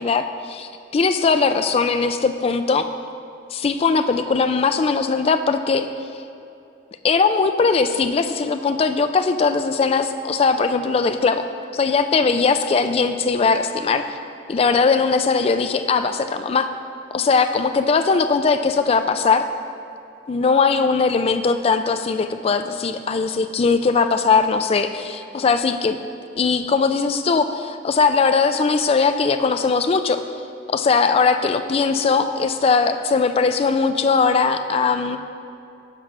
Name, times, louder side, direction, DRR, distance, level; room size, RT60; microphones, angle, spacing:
voice 1, 0.0-2.9 3.5-5.9 7.0-11.5 11.7-14.1 14.5-16.7 17.1-19.5 20.3-26.0 26.4-30.2 30.7-35.2, left 4 dB, 30° left, 8 dB, 0.3 m, -19 dB
5.8 x 4.6 x 6.3 m, 2.7 s
head